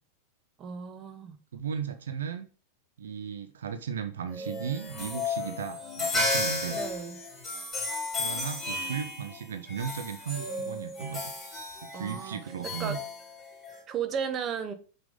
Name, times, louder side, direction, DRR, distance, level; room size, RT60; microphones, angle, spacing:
voice 1, 0.6-1.4 6.7-7.2 11.9-12.4 12.8-13.0 13.9-14.7, right 7 dB, 30° right, 0.8 m, -34 dB
voice 2, 1.5-2.5 3.0-6.8 8.1-11.3 11.8-13.0, right 7 dB, 65° right, 0.6 m, -36 dB
sound 1, 4.3-13.8, left 2 dB, 5° left, 3.2 m, -34 dB
5.9 x 5.2 x 3.8 m
figure-of-eight pair, 90°, 0 cm